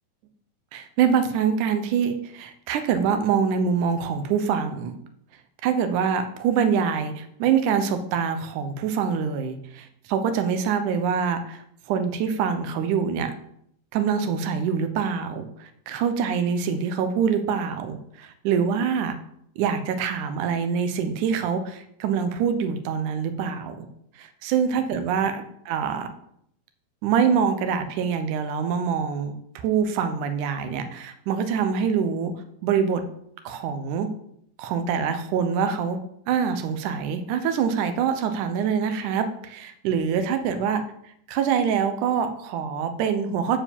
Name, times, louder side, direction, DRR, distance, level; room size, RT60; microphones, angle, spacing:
voice 1, 0.7-5.0 5.6-13.3 13.9-19.2 19.6-23.9 24.2-26.1 27.0-32.3 32.6-33.0 33.5-34.1 34.6-36.0 36.3-40.8 41.3-43.6, right 7 dB, 70° right, 8 dB, 2.0 m, -25 dB
9.0 x 4.7 x 7.2 m, 0.71 s
omnidirectional pair, 4.3 m